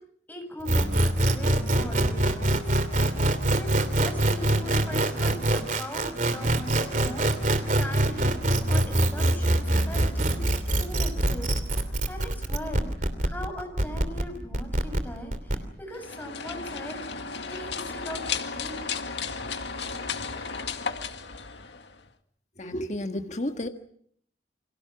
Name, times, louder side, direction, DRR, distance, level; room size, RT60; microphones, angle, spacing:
voice 1, 0.3-2.7 3.5-11.5 12.1-18.9 19.9-20.2, left 1 dB, 10° left, 7.3 m, -40 dB
sound 1, 0.7-15.5, right 1 dB, 45° right, 2.9 m, -24 dB
sound 2, 15.9-22.1, left 5 dB, 85° left, 2.0 m, -34 dB
voice 2, 22.6-23.7, left 1 dB, 40° left, 1.7 m, -31 dB
29.5 x 25.5 x 6.1 m
head